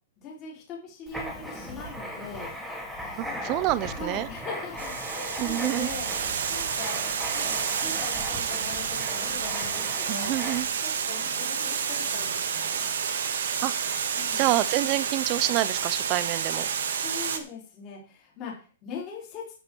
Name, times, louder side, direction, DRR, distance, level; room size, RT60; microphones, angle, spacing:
voice 1, 0.2-2.5 3.2-3.6 3.9-6.1 6.5-7.0 7.3-10.3 10.8-12.8 14.1-14.5 17.0-19.4, left 5 dB, 25° left, -3 dB, 3.9 m, -41 dB
Writing, 1.1-10.9, equal, ahead, 2.1 m, -38 dB
voice 2, 3.2-4.3 5.4-5.9 10.1-10.7 13.6-13.7 14.3-16.7, right 16 dB, 25° right, 17 dB, 0.6 m, -27 dB
Water, 4.8-17.4, right 7 dB, 80° right, 1.7 m, -29 dB
11.0 x 8.2 x 4.6 m, 0.37 s
hypercardioid pair, 170°, 0 cm